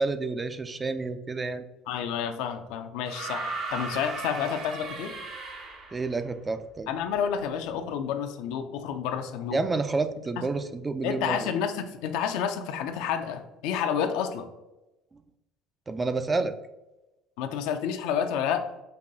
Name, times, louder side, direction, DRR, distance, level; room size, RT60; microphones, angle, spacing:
voice 1, 0.0-1.6 5.9-6.9 9.5-11.5 15.9-16.5, right 3 dB, 25° right, 10 dB, 0.3 m, -29 dB
voice 2, 1.9-5.1 6.9-9.6 10.4-10.5 11.0-14.5 17.4-18.6, left 8 dB, 75° left, 7 dB, 0.4 m, -30 dB
sound 1, 3.1-6.1 7.4-7.5, right 3 dB, 60° right, 0.7 m, -36 dB
5.3 x 2.3 x 2.6 m, 0.99 s
hypercardioid pair, 70°, 0 cm